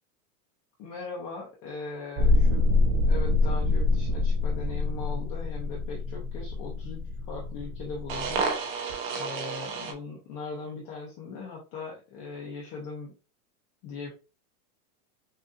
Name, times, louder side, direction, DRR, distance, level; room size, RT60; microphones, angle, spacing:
voice 1, 0.8-8.5 9.1-13.1 13.8-14.1, left 4 dB, 25° left, -3 dB, 0.8 m, -39 dB
sound 1, 2.2-9.9, left 2 dB, 35° right, 1.0 m, -26 dB
6.3 x 2.6 x 2.7 m, 0.31 s
supercardioid pair, 175°, 46 cm